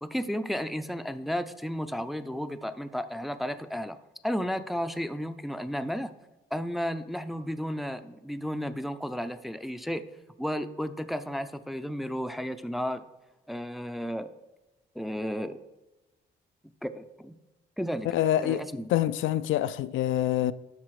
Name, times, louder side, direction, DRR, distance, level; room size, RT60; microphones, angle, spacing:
voice 1, 0.0-4.0 4.2-6.1 6.5-10.0 10.4-13.0 13.5-14.3 15.0-15.6 16.8-17.4 17.8-18.1 18.4-18.9, equal, ahead, 0.5 m, -33 dB
voice 2, 18.0-20.5, left 12 dB, 80° left, 0.4 m, -26 dB
12.0 x 4.1 x 4.8 m
cardioid pair, 90°, 20 cm